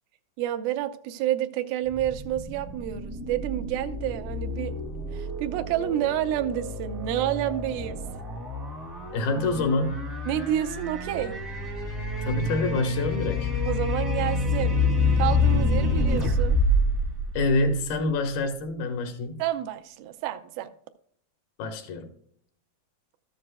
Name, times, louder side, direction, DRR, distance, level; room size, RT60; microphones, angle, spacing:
voice 1, 0.4-4.7 5.1-8.0 10.3-11.4 13.7-14.8 15.2-16.6 19.4-20.7, right 12 dB, 90° right, 8 dB, 2.4 m, -29 dB
sound 1, 1.9-18.1, left 2 dB, 35° right, 0.3 m, -28 dB
voice 2, 9.1-10.0 12.2-13.5 17.3-19.4 21.6-22.1, left 2 dB, 90° left, 6 dB, 3.2 m, -26 dB
13.5 x 7.6 x 2.2 m, 0.65 s
omnidirectional pair, 4.1 m